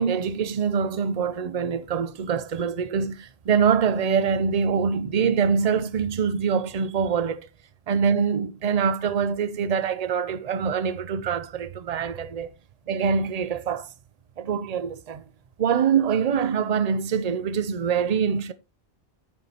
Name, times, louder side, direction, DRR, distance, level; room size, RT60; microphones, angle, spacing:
voice 1, 0.0-7.4 7.9-12.5 12.9-13.9 14.4-15.2 15.6-18.5, right 6 dB, 45° right, 0.7 m, -24 dB
9.7 x 8.1 x 2.9 m
omnidirectional pair, 1.1 m